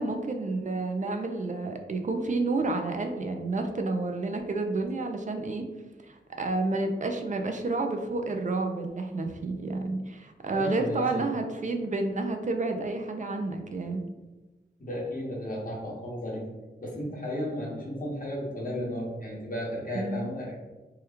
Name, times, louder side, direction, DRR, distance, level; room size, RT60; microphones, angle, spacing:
voice 1, 0.0-5.6 6.0-14.0 19.9-20.3, right 3 dB, 40° right, 4 dB, 0.4 m, -30 dB
voice 2, 10.5-11.4 14.8-16.4 16.8-20.6, equal, 45° left, -4 dB, 1.0 m, -34 dB
3.0 x 2.2 x 3.4 m, 1.1 s
wide cardioid pair, 95°, 20 cm